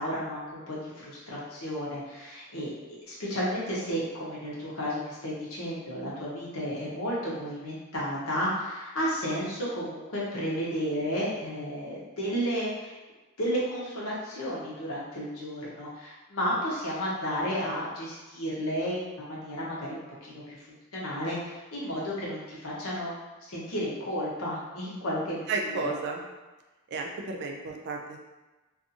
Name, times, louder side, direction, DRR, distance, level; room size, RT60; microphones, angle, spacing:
voice 1, 0.0-12.9 13.4-20.7 20.9-23.1 23.5-25.8, equal, 80° left, -6 dB, 0.9 m, -32 dB
voice 2, 25.5-26.2 26.9-28.2, right 3 dB, 55° right, 1 dB, 0.4 m, -32 dB
2.5 x 2.4 x 2.7 m, 1.2 s
head